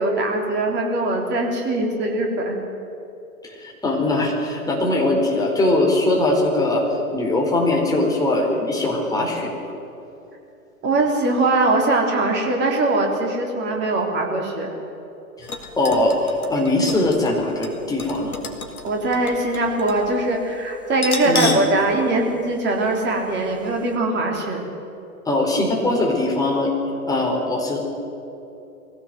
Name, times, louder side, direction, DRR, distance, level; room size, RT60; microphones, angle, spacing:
voice 1, 0.0-2.6 10.8-14.7 18.8-24.8, right 2 dB, 25° right, 1 dB, 3.8 m, -21 dB
voice 2, 3.4-6.8 7.1-9.7 15.4-15.5 15.8-18.3 21.2-21.6 25.2-26.7 27.1-27.8, left 2 dB, 10° left, -1 dB, 4.5 m, -21 dB
sound 1, 15.4-20.1 20.3-20.4 20.9-21.8 22.1-22.2 23.0-23.1 23.5-23.6, left 3 dB, 75° left, 2.6 m, -32 dB
23.0 x 17.0 x 7.8 m, 2.9 s
figure-of-eight pair, 110°, 44 cm